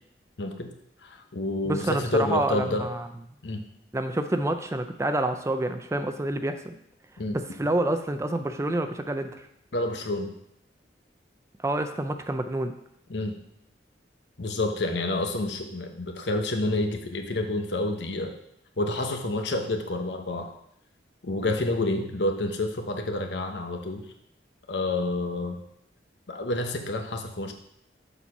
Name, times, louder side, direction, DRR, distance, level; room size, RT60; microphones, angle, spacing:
voice 1, 0.4-0.7 1.0-2.9 3.4-3.6 7.2-7.4 9.7-10.3 13.1-13.4 14.4-18.3 18.8-20.5 21.2-24.1 24.7-25.6 26.3-27.5, left 2 dB, 75° left, 4 dB, 0.9 m, -29 dB
voice 2, 1.6-3.1 3.9-6.7 7.3-9.4 11.6-12.7, right 1 dB, 15° right, 8 dB, 0.4 m, -28 dB
7.1 x 4.4 x 5.5 m, 0.74 s
head